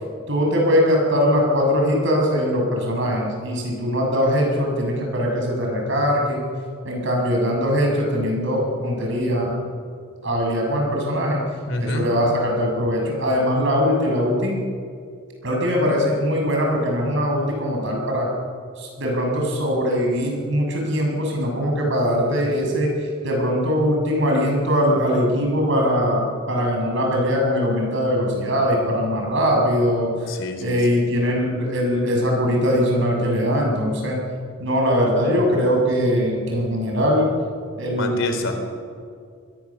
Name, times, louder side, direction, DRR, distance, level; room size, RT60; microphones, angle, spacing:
voice 1, 0.3-6.4 6.9-9.5 10.2-11.4 11.8-14.6 15.4-18.3 18.8-22.9 23.2-26.2 26.5-30.1 30.6-34.2 34.6-37.3 37.8-38.2, equal, 65° right, 0 dB, 6.8 m, -21 dB
voice 2, 11.7-12.1 30.3-31.0 38.0-38.5, left 2 dB, 65° left, 6 dB, 3.7 m, -27 dB
26.0 x 20.5 x 7.2 m, 2.2 s
head